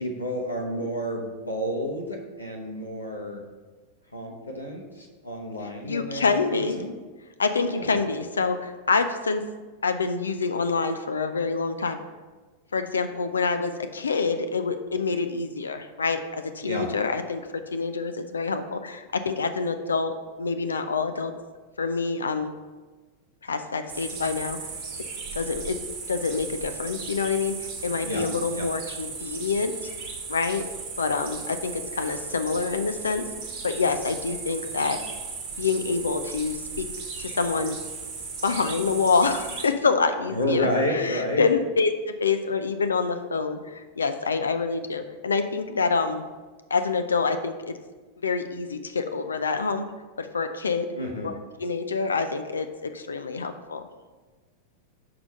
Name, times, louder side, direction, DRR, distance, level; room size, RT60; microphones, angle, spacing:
voice 1, 0.0-3.4 4.1-6.9 7.6-8.0 16.6-16.9 28.0-28.3 28.5-28.7 40.3-41.4 50.9-51.3, equal, 90° left, -2 dB, 0.9 m, -30 dB
voice 2, 5.8-6.8 7.4-9.4 9.8-12.0 12.7-17.4 17.7-21.3 21.8-22.5 23.4-24.6 25.4-25.8 26.1-29.9 30.3-30.6 31.0-33.2 33.6-35.0 35.6-36.9 37.2-37.8 38.4-46.2 46.7-47.5 48.2-49.9 50.2-50.9 51.2-53.8, left 4 dB, 70° left, 8 dB, 0.4 m, -26 dB
sound 1, 23.9-39.7, right 4 dB, 45° right, 1.2 m, -36 dB
6.1 x 4.7 x 5.3 m, 1.3 s
figure-of-eight pair, 90°, 0 cm